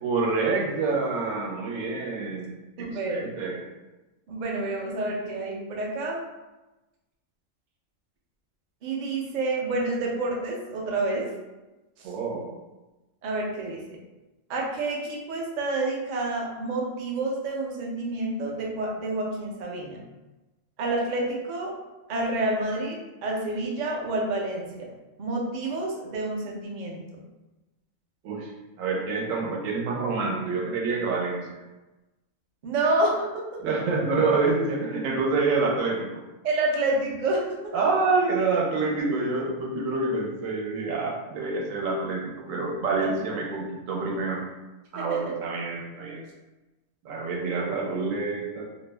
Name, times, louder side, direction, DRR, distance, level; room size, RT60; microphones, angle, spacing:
voice 1, 0.0-3.7 12.0-12.5 28.2-28.5 28.8-31.6 33.6-36.2 37.7-44.4 44.9-46.2 47.0-48.6, right 3 dB, 85° right, -1 dB, 1.0 m, -27 dB
voice 2, 2.8-3.3 4.3-6.2 8.8-11.3 12.0-12.1 13.2-13.8 14.5-20.0 20.8-21.7 22.1-24.9 25.2-27.0 32.6-33.3 36.4-37.6 43.0-43.1 45.0-45.2, right 2 dB, 60° right, -2 dB, 0.5 m, -28 dB
2.4 x 2.0 x 3.2 m, 1.1 s
omnidirectional pair, 1.3 m